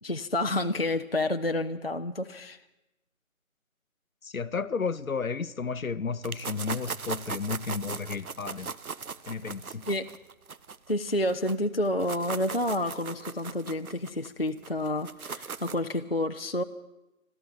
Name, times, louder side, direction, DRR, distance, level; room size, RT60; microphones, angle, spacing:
voice 1, 0.0-2.6 9.9-10.1 10.9-16.6, left 1 dB, 45° left, 0.4 m, -29 dB
voice 2, 4.2-8.7 9.3-9.9, left 5 dB, 75° left, 0.8 m, -32 dB
sound 1, 6.2-11.5 11.9-15.9, right 5 dB, 90° right, 0.8 m, -39 dB
13.0 x 12.5 x 8.8 m
figure-of-eight pair, 170°, 42 cm